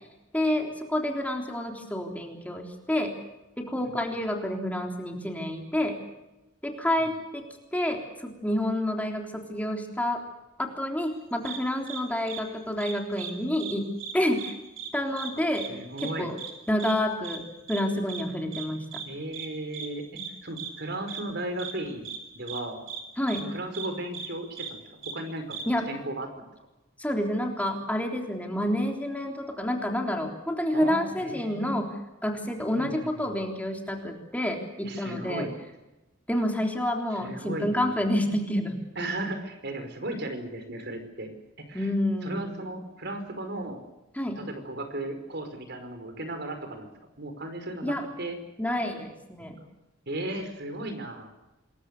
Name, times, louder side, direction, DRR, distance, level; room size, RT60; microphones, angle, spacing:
voice 1, 0.3-3.1 3.6-6.0 6.6-7.4 7.7-10.2 10.6-13.9 14.1-14.5 14.9-15.7 16.0-16.4 16.7-17.4 17.7-19.0 20.1-20.3 23.2-23.5 25.7-25.9 27.0-35.4 36.3-38.8 41.7-42.7 44.2-44.4 47.8-48.0 48.6-49.6, left 1 dB, 10° left, 2 dB, 3.5 m, -29 dB
sound 1, 11.4-11.6 11.9-12.0 12.3-12.4 12.8-13.3 13.6-13.7 14.0-14.5 14.8-14.9 15.2-15.3 15.5-15.7 16.0-16.1 16.4-16.5 16.8-16.9 17.2-17.4 17.7-17.8 18.1-18.2 18.5-18.6 18.9-19.0 19.3-19.5 19.7-19.9 20.2-20.3 20.6-20.7 21.1-21.2 21.6-21.7 22.0-22.2 22.5-22.6 22.9-23.0 23.3-23.4 23.7-23.9 24.1-24.3 24.5-24.7 25.0-25.1 25.5-25.6, right 7 dB, 90° right, 5.2 m, -37 dB
voice 2, 15.7-16.3 19.0-20.0 20.4-22.8 23.3-25.6 25.9-26.3 30.7-31.8 32.8-33.4 34.8-35.5 37.1-37.9 38.9-41.3 41.6-41.9 42.2-43.8 44.3-46.9 47.2-48.4 49.6-49.7 50.1-51.3, right 1 dB, 60° right, 7 dB, 5.1 m, -36 dB
27.0 x 22.0 x 6.7 m, 0.99 s
head